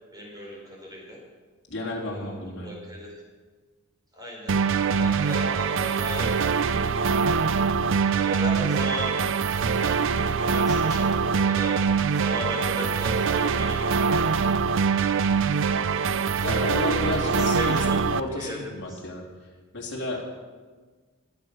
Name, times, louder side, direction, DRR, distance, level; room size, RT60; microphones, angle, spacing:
voice 1, 0.1-1.2 2.0-3.2 4.1-4.6 5.0-6.5 8.1-9.1 9.8-11.8 12.2-14.5 17.0-19.0, equal, 20° right, -2 dB, 4.6 m, -37 dB
voice 2, 1.7-2.7 4.9-5.1 16.4-19.2 19.7-20.3, left 2 dB, 55° left, -2 dB, 3.4 m, -32 dB
sound 1, 4.5-18.2, right 5 dB, 60° right, 0.5 m, -23 dB
22.0 x 8.3 x 6.2 m, 1.4 s
head